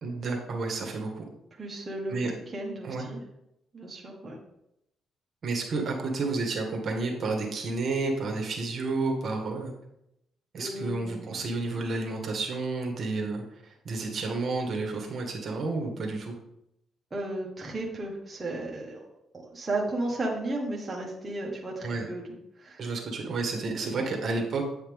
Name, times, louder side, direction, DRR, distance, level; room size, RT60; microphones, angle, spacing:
voice 1, 0.0-1.3 2.1-2.3 2.8-3.1 5.4-9.7 10.5-16.3 21.8-22.1 22.8-24.7, right 3 dB, 50° right, 2 dB, 1.7 m, -31 dB
voice 2, 1.6-2.2 2.5-3.2 3.7-4.4 10.5-11.4 17.1-22.2 22.6-22.8 23.8-24.0, right 2 dB, 25° right, -2 dB, 1.5 m, -34 dB
9.0 x 5.7 x 3.6 m, 0.79 s
cardioid pair, 90°, 0 cm